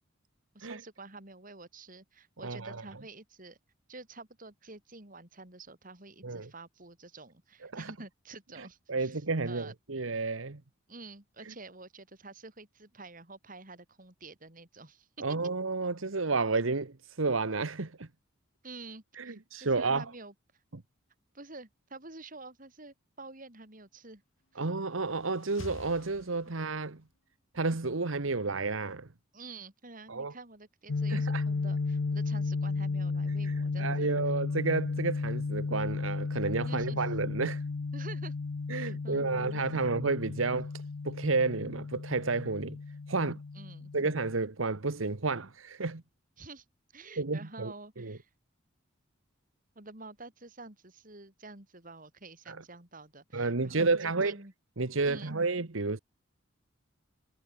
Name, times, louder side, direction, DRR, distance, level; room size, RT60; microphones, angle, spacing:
voice 1, 0.5-3.6 3.9-9.7 10.9-15.1 18.6-20.3 21.3-24.2 24.5-24.6 29.3-34.1 36.6-37.1 37.9-38.3 38.7-39.9 40.4-40.5 43.5-43.9 46.4-46.6 46.9-48.3 49.7-54.5 55.0-55.3, right 3 dB, 45° right, 4.4 m, -49 dB
voice 2, 2.4-2.8 6.2-6.5 7.6-7.9 8.9-10.6 15.2-18.1 19.2-20.0 20.7-20.8 24.6-27.0 27.5-29.1 30.1-30.3 31.1-31.4 33.5-33.6 33.8-37.6 38.7-40.7 41.0-42.8 43.1-43.4 43.9-46.0 47.2-48.2 52.5-52.6 53.3-54.3 54.8-56.0, right 3 dB, 85° right, 1.3 m, -31 dB
sound 1, 24.6-27.0, left 2 dB, 85° left, 1.4 m, -48 dB
sound 2, 30.9-44.3, left 4 dB, 65° left, 0.6 m, -34 dB
head